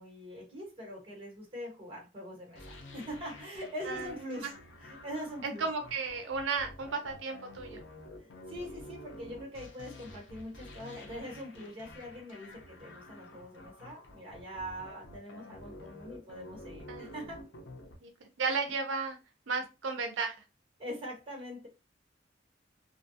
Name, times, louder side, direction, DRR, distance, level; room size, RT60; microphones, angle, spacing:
voice 1, 0.0-4.5 4.8-5.7 8.2-17.5 20.8-21.7, equal, 30° right, 1.1 m, -43 dB
sound 1, 2.5-18.0, left 1 dB, 75° left, 0.6 m, -50 dB
voice 2, 5.4-7.8 15.8-15.9 16.9-17.1 18.0-19.2 19.5-20.4, right 4 dB, 80° right, 0.5 m, -34 dB
2.7 x 2.3 x 2.6 m
head